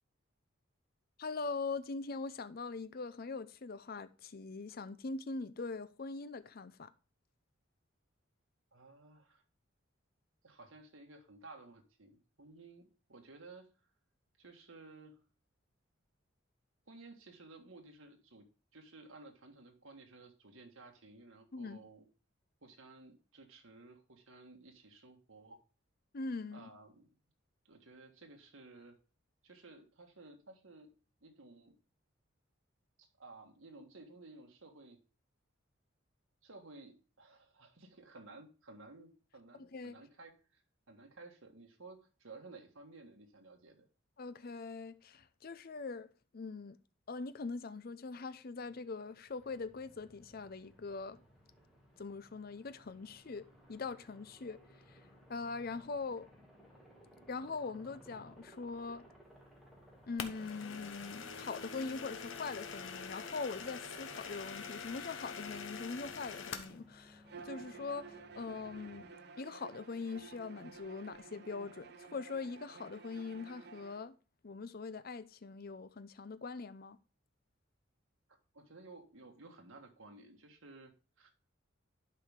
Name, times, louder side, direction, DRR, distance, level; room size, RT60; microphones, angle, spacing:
voice 1, 1.2-6.9 21.5-21.8 26.1-26.7 39.7-40.0 44.2-46.8 47.1-51.2 52.0-55.0 55.3-56.3 57.3-59.1 60.1-69.1 69.4-74.1 74.4-77.0, left 4 dB, 45° left, 0.5 m, -42 dB
voice 2, 8.7-9.4 10.4-13.7 14.4-15.2 16.9-18.5 18.7-22.1 22.6-25.6 26.5-27.1 27.6-29.0 29.4-30.9 31.2-31.7 33.0-35.0 36.4-40.6 40.9-43.8 78.3-81.3, right 3 dB, 85° right, 1.6 m, -55 dB
Aircraft, 49.1-69.0, equal, ahead, 2.3 m, -60 dB
sound 1, 60.2-66.8, left 6 dB, 70° left, 0.9 m, -45 dB
Bowed string instrument, 67.3-74.0, right 5 dB, 55° right, 0.8 m, -52 dB
11.5 x 4.8 x 3.6 m
head